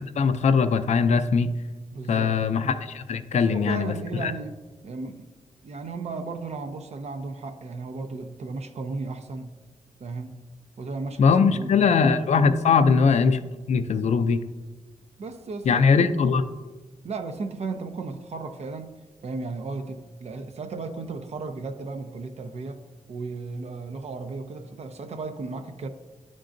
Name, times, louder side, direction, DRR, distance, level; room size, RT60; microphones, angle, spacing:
voice 1, 0.0-1.5 2.1-4.3 11.2-13.4 13.7-14.4 15.7-16.4, left 5 dB, 60° left, 9 dB, 0.4 m, -21 dB
voice 2, 1.9-2.5 3.3-4.6 4.8-5.3 5.6-9.6 10.0-10.3 10.8-12.2 13.0-13.1 15.2-16.1 17.0-18.9 19.2-25.9, right 3 dB, 55° right, 7 dB, 0.6 m, -35 dB
10.5 x 3.7 x 2.6 m, 1.2 s
wide cardioid pair, 100°, 13 cm